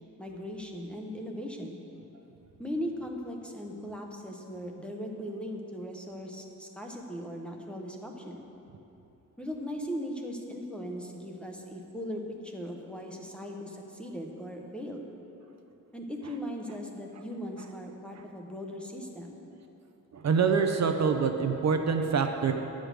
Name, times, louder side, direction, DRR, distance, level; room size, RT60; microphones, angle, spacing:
voice 1, 0.2-1.8 2.6-8.5 9.4-15.1 15.9-19.3, equal, 5° left, 0 dB, 0.7 m, -38 dB
voice 2, 20.1-22.5, right 5 dB, 55° right, 5 dB, 0.6 m, -25 dB
10.5 x 5.1 x 7.5 m, 3.0 s
wide cardioid pair, 165°, 32 cm